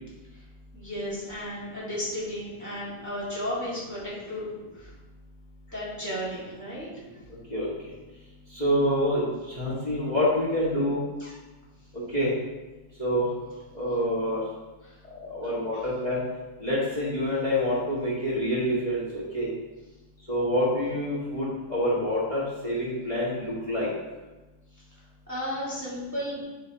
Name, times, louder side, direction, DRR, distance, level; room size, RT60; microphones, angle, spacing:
voice 1, 0.7-4.9 5.7-6.9 11.2-11.4 14.8-15.0 15.4-15.8 24.7-25.0 25.3-26.4, equal, 10° right, -9 dB, 1.8 m, -34 dB
voice 2, 8.5-9.2 9.5-11.0 11.9-12.3 13.0-13.2 13.7-14.4 15.1-16.2 16.6-19.5 20.3-23.9, equal, 25° left, -7 dB, 1.7 m, -27 dB
11.5 x 3.9 x 2.9 m, 1.1 s
omnidirectional pair, 1.9 m